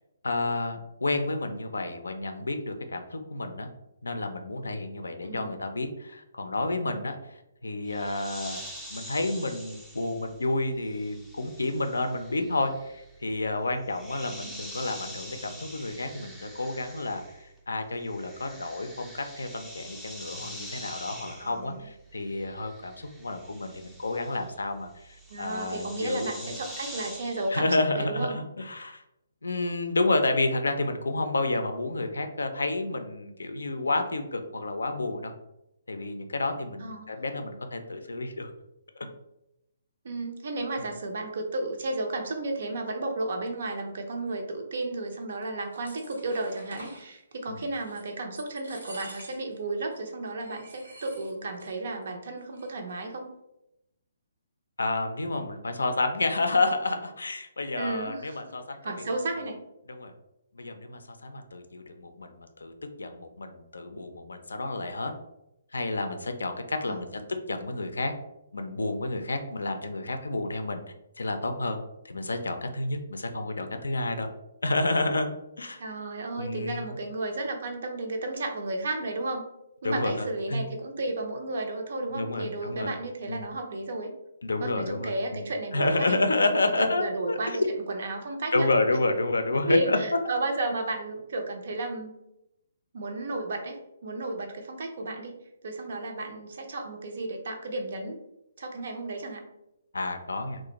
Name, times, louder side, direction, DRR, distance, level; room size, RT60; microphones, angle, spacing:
voice 1, 0.2-3.7 4.0-8.6 8.9-26.6 27.5-29.0 29.4-35.3 35.9-38.5 39.0-39.1 47.5-47.6 54.8-59.0 59.4-59.5 59.9-60.1 60.5-65.1 65.7-67.1 67.5-68.1 68.5-70.8 71.2-71.8 72.0-74.3 74.6-75.3 75.6-75.8 76.4-77.0 79.8-80.7 82.1-82.9 83.3-83.5 84.4-85.4 85.7-87.7 88.5-90.0 99.9-100.6, left 2 dB, 80° left, 6 dB, 0.4 m, -30 dB
voice 2, 5.2-5.6 21.4-21.9 25.3-27.7 27.9-28.4 36.8-37.1 40.0-53.3 57.8-58.4 58.8-59.6 66.8-67.0 75.8-79.4 79.8-84.1 84.6-86.2 86.8-87.6 87.9-88.7 89.6-92.1 92.9-95.4 95.6-98.2 98.6-99.4, right 2 dB, 60° right, 4 dB, 0.5 m, -33 dB
sound 1, 7.9-17.6 17.8-27.6, equal, ahead, 0.4 m, -45 dB
sound 2, 45.4-47.0 47.6-48.1 48.4-49.6 49.9-50.0 50.4-51.8 52.0-52.1 52.4-52.9, right 1 dB, 85° right, 1.1 m, -47 dB
2.4 x 2.1 x 2.9 m, 0.87 s
figure-of-eight pair, 140°, 0 cm